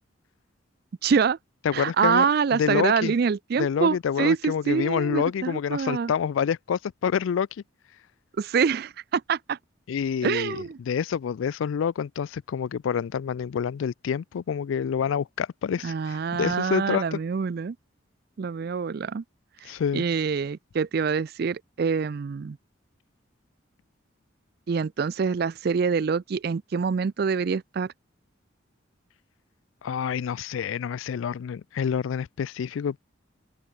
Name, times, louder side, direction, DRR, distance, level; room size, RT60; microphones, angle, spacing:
voice 1, 1.0-1.4 1.7-6.1 8.4-9.6 10.2-10.8 15.8-17.8 18.4-19.2 19.6-22.6 24.7-27.9, right 6 dB, 50° right, 0.4 m, -25 dB
voice 2, 1.6-2.3 2.5-3.1 3.6-7.5 9.9-17.2 19.7-20.0 29.8-33.0, left 7 dB, 80° left, 0.3 m, -27 dB
open air
head